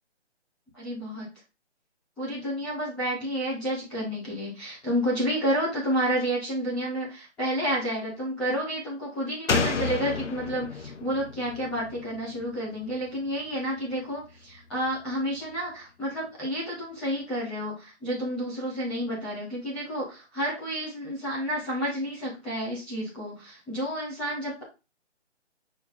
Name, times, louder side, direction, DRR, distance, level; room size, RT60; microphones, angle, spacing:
voice 1, 0.7-1.3 2.2-24.6, equal, 5° left, -13 dB, 1.4 m, -30 dB
Slam, 9.5-13.0 13.3-13.4, left 4 dB, 80° left, 1.0 m, -31 dB
8.3 x 4.0 x 3.9 m, 0.29 s
hypercardioid pair, 180°, 36 cm